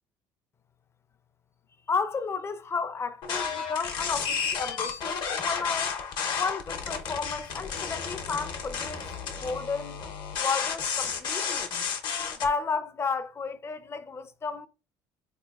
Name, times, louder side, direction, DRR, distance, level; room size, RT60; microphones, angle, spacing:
voice 1, 1.9-6.0 6.4-9.0 9.3-10.0 10.4-11.7 12.4-14.7, left 5 dB, 30° left, 0.4 m, -32 dB
sound 1, 3.2-12.5, left 6 dB, 60° left, 0.7 m, -32 dB
3.8 x 2.9 x 2.3 m
supercardioid pair, 80°, 9 cm